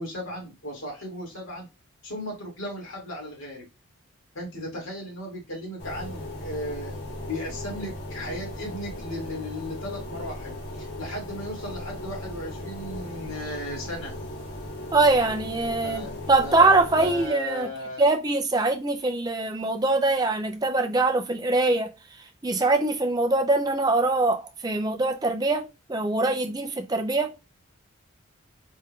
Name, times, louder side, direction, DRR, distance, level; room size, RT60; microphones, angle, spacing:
voice 1, 0.0-1.7 2.0-3.7 4.3-7.0 7.3-14.1 15.8-16.7 17.0-18.1, left 1 dB, 70° left, 2.4 m, -36 dB
sound 1, 5.8-17.3, left 1 dB, 50° left, 1.3 m, -37 dB
voice 2, 14.9-17.7 18.0-21.9 22.4-27.3, right 2 dB, 20° right, 0.5 m, -23 dB
4.4 x 2.5 x 3.6 m
head